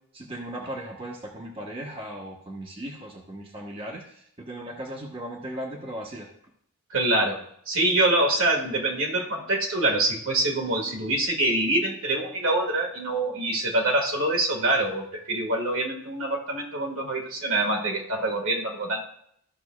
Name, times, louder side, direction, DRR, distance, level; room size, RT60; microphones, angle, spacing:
voice 1, 0.1-6.3, right 1 dB, 25° right, -1 dB, 1.1 m, -37 dB
voice 2, 6.9-7.4 7.7-19.0, right 2 dB, 65° right, 1 dB, 1.9 m, -25 dB
15.0 x 5.9 x 2.3 m, 0.70 s
head